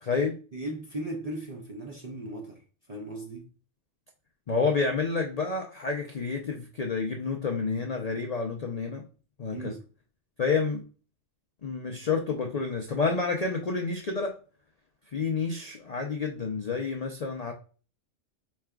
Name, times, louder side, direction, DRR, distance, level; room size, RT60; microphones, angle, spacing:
voice 1, 0.0-0.4 4.5-9.0 9.4-9.7 10.4-10.8 11.6-14.3 15.1-17.5, left 4 dB, 60° left, 0.4 m, -29 dB
voice 2, 0.5-2.6 2.9-3.5 9.5-9.8, right 1 dB, 45° right, 0.5 m, -37 dB
4.6 x 3.2 x 2.3 m
omnidirectional pair, 1.3 m